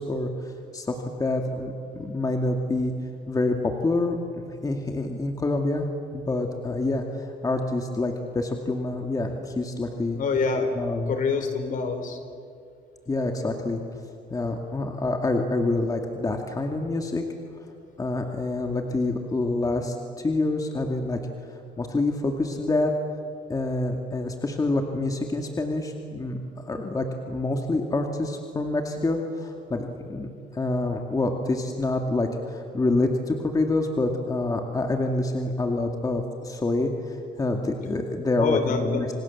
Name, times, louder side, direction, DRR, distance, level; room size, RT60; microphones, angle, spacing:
voice 1, 0.0-2.9 3.3-5.9 6.1-10.2 10.8-11.1 13.1-13.8 14.3-17.2 18.0-21.2 21.5-23.0 23.5-26.4 26.6-39.2, left 2 dB, 20° left, 3 dB, 2.3 m, -27 dB
voice 2, 10.2-10.8 11.1-12.2 38.4-39.0, left 4 dB, 50° left, 8 dB, 4.0 m, -26 dB
28.0 x 26.5 x 7.3 m, 2.4 s
cardioid pair, 110°, 17 cm